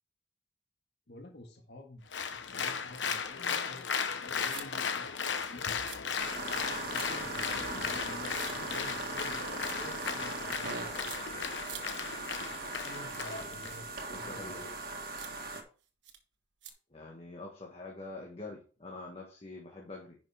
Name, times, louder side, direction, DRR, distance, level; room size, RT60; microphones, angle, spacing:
voice 1, 1.1-2.1 2.3-3.9 4.2-5.7 6.8-11.1 12.8-13.8 14.1-14.6, left 1 dB, 65° left, 2 dB, 1.7 m, -49 dB
Applause, 2.1-13.7, left 6 dB, 80° left, 1.0 m, -36 dB
sound 1, 3.0-3.2 3.7-3.8 4.4-4.7 5.3-5.5 5.8-6.0 6.9-7.1 8.3-8.5 9.6-10.1 11.0-11.2 11.6-11.8 13.1-13.3 13.7-13.8 14.6-14.7 15.2-15.3 16.0-16.2 16.6-16.7, right 9 dB, 75° right, 1.3 m, -47 dB
sound 2, 6.2-15.6, right 2 dB, 55° right, 1.6 m, -39 dB
voice 2, 14.1-14.7 16.9-20.2, left 2 dB, 35° left, -1 dB, 1.5 m, -45 dB
10.5 x 5.6 x 3.5 m, 0.37 s
head